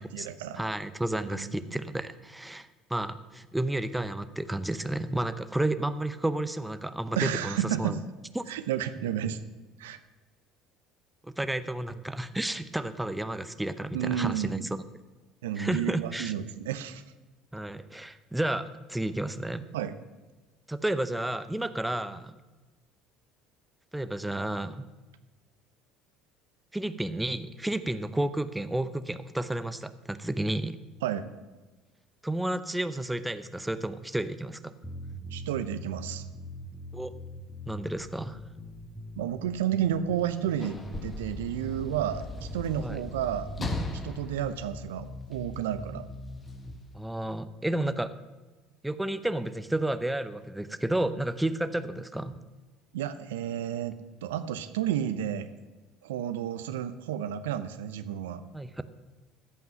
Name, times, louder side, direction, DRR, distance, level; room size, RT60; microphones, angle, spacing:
voice 1, 0.0-0.6 1.3-1.5 7.2-8.0 8.5-9.4 9.8-10.0 13.9-14.6 15.4-17.0 19.7-20.0 31.0-31.3 35.3-36.2 39.2-43.7 44.0-46.0 52.9-55.5 56.0-58.4, right 10 dB, 80° right, 11 dB, 0.6 m, -31 dB
voice 2, 0.6-8.0 8.3-8.4 11.2-14.8 15.6-16.3 17.5-19.6 20.7-22.3 23.9-24.9 26.7-30.8 32.2-34.7 36.9-37.1 37.7-38.4 42.8-43.0 46.9-48.1 48.8-52.3 58.5-58.8, right 1 dB, 5° right, 12 dB, 0.7 m, -31 dB
sound 1, 34.8-46.8, equal, 10° left, 1.7 m, -42 dB
Sliding door / Slam, 40.1-45.5 46.4-46.6, left 2 dB, 30° left, 1.6 m, -38 dB
14.0 x 5.7 x 7.6 m, 1.2 s
hypercardioid pair, 70°, 0 cm